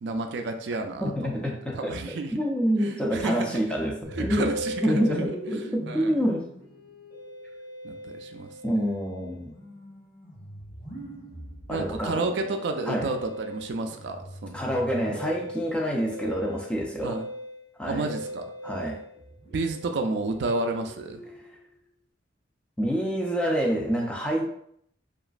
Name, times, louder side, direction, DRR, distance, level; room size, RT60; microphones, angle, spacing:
voice 1, 0.0-1.4 1.7-2.3 2.8-3.6 4.1-5.0 5.3-5.6 5.9-6.1 7.8-8.5 11.7-14.6 17.0-17.3 17.9-18.4 19.5-21.2, right 3 dB, 65° right, 5 dB, 0.3 m, -31 dB
voice 2, 1.0-2.0 2.3-4.5 4.8-6.5 8.6-9.5 11.7-12.2 12.9-13.1 14.5-17.2 17.8-18.1 18.6-19.0 22.8-24.5, equal, 5° left, -1 dB, 0.4 m, -27 dB
Musical instrument, 4.0-21.6, equal, 50° left, 1.2 m, -40 dB
2.9 x 2.4 x 2.4 m, 0.67 s
head